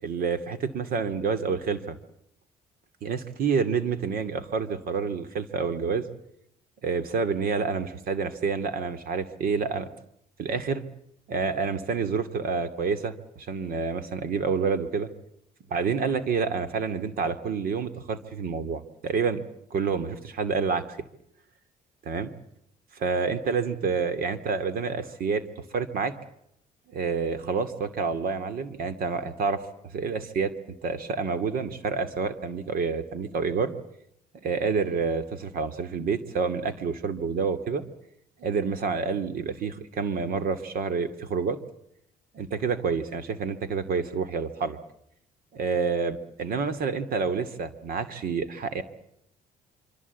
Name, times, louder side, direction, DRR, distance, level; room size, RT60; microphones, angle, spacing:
voice 1, 0.0-2.0 3.0-6.1 6.8-9.9 10.4-10.8 11.3-15.1 15.7-19.4 19.7-20.8 22.0-22.3 22.9-25.4 25.7-26.1 26.9-29.7 29.9-30.5 30.8-33.7 34.4-37.8 38.4-41.6 42.3-44.8 45.5-48.8, right 5 dB, 60° right, 11 dB, 2.4 m, -28 dB
26.0 x 25.0 x 8.4 m, 0.76 s
cardioid pair, 110°, 17 cm